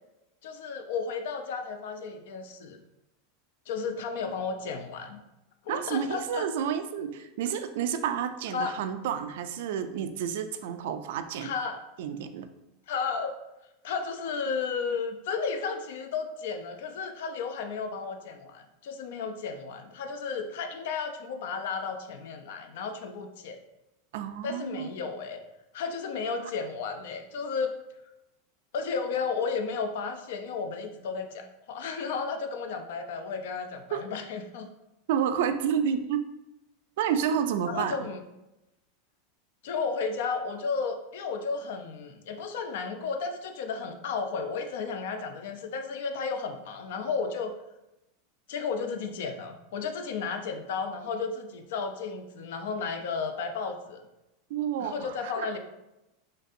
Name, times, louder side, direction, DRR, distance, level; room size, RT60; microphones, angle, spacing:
voice 1, 0.4-2.8 3.7-5.2 5.6-6.4 8.5-8.8 11.4-11.8 12.9-13.4 13.8-23.6 24.4-25.4 25.7-27.7 28.7-34.7 37.6-38.2 39.6-47.5 48.5-54.0 54.8-55.6, left 5 dB, 75° left, 6 dB, 0.4 m, -33 dB
voice 2, 5.7-11.5 12.0-12.5 24.1-24.9 33.9-34.0 35.1-36.3 37.0-37.9 54.5-55.5, right 8 dB, 75° right, 9 dB, 0.3 m, -30 dB
4.0 x 2.5 x 2.5 m, 0.94 s
supercardioid pair, 125°, 0 cm